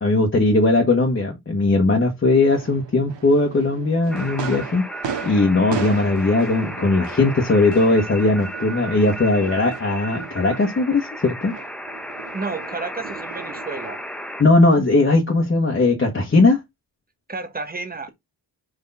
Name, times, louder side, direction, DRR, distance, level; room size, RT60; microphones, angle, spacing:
voice 1, 0.0-4.9 5.2-11.5 14.4-16.6, left 2 dB, 30° left, 1.6 m, -18 dB
sound 1, 2.5-14.7, right 7 dB, 85° right, 1.8 m, -37 dB
sound 2, 4.1-14.4, equal, ahead, 0.8 m, -34 dB
voice 2, 12.3-14.0 17.3-18.1, right 4 dB, 20° right, 1.3 m, -31 dB
5.1 x 4.4 x 5.6 m
wide cardioid pair, 145°, 42 cm